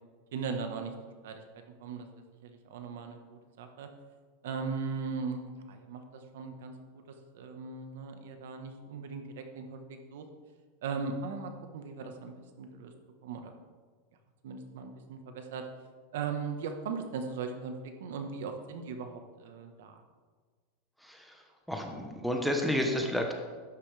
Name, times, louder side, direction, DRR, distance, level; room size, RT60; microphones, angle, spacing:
voice 1, 0.3-0.9 1.2-1.4 1.8-2.1 2.4-3.9 4.4-7.0 7.3-10.2 10.8-12.9 13.2-13.5 14.4-15.7 16.1-20.0, right 5 dB, 80° right, 6 dB, 1.3 m, -38 dB
voice 2, 21.0-23.3, left 1 dB, ahead, 2 dB, 1.1 m, -31 dB
12.0 x 9.7 x 3.4 m, 1.5 s
supercardioid pair, 160°, 0 cm